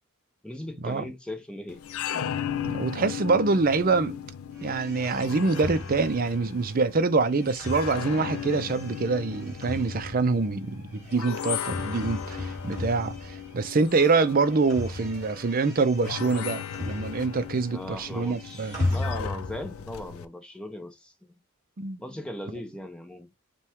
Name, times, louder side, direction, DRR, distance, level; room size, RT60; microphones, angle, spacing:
voice 1, 0.4-1.8 17.7-21.4 22.0-23.3, left 1 dB, 5° left, 0.8 m, -38 dB
sound 1, 1.7-20.3, left 8 dB, 80° left, 0.4 m, -37 dB
voice 2, 2.6-4.2 4.6-18.8 21.8-22.0, right 3 dB, 40° right, 0.5 m, -25 dB
sound 2, 4.5-13.8 14.1-17.6 17.8-19.7, left 2 dB, 15° right, 2.8 m, -37 dB
5.5 x 2.3 x 3.5 m
head